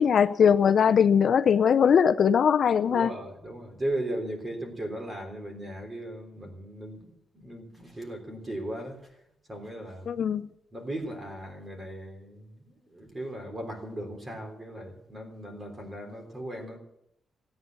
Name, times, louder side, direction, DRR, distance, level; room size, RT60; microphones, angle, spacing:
voice 1, 0.0-3.1 10.1-10.5, left 7 dB, 50° left, 0.6 m, -21 dB
voice 2, 2.9-9.1 9.5-10.3 10.7-16.8, right 1 dB, 20° right, 3.6 m, -37 dB
17.0 x 9.5 x 8.4 m
wide cardioid pair, 155°, 0 cm